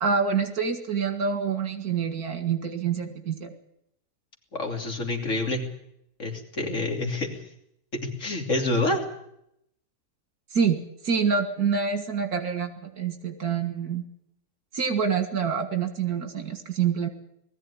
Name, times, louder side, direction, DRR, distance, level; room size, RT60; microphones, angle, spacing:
voice 1, 0.0-3.5 10.5-10.8 11.0-14.0 14.7-17.1, right 6 dB, 70° right, 7 dB, 2.4 m, -26 dB
voice 2, 4.5-5.6 6.2-7.4 8.0-9.0, left 2 dB, 50° left, 2 dB, 3.5 m, -27 dB
20.0 x 14.5 x 9.9 m, 0.78 s
omnidirectional pair, 1.7 m